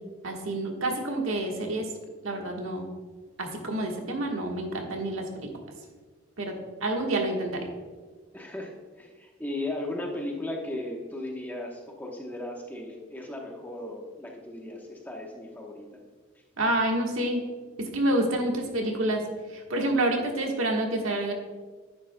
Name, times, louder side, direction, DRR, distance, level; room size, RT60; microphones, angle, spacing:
voice 1, 0.2-1.9 2.2-2.9 3.4-5.5 6.4-6.5 6.8-7.6 16.6-17.4 17.8-19.2 19.5-21.3, right 1 dB, 75° right, 1 dB, 1.4 m, -28 dB
voice 2, 8.3-16.0, left 1 dB, 10° left, 0 dB, 1.0 m, -36 dB
10.5 x 9.3 x 2.2 m, 1.4 s
head